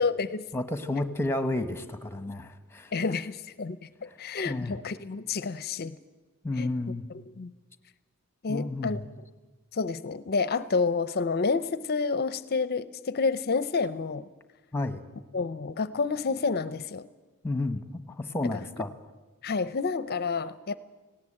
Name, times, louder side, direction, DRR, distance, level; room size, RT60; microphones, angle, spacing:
voice 1, 0.0-0.5 2.9-6.0 6.6-6.7 7.1-7.5 8.4-9.0 9.7-14.3 15.3-17.1 19.4-20.8, left 4 dB, 45° left, 16 dB, 0.5 m, -29 dB
voice 2, 0.5-2.9 4.4-4.7 6.4-7.0 8.5-9.1 14.7-15.0 17.4-17.8 18.1-18.9, left 2 dB, 10° left, 11 dB, 1.1 m, -31 dB
18.0 x 17.5 x 8.8 m, 1.3 s
head